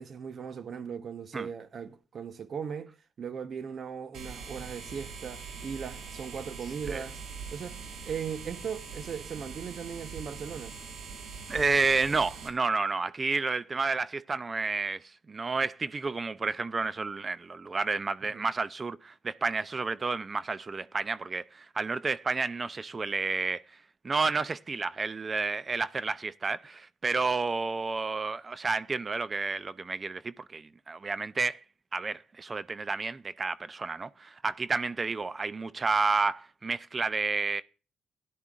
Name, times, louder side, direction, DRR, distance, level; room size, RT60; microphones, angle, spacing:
voice 1, 0.0-7.2 7.5-10.7 18.2-18.4, right 7 dB, 55° right, 1.0 m, -38 dB
sound 1, 4.1-12.5, right 5 dB, 85° right, 2.2 m, -42 dB
voice 2, 11.5-23.6 24.0-31.6 31.9-37.6, right 4 dB, 30° right, 0.4 m, -30 dB
16.0 x 11.0 x 2.5 m
cardioid pair, 90°, 0 cm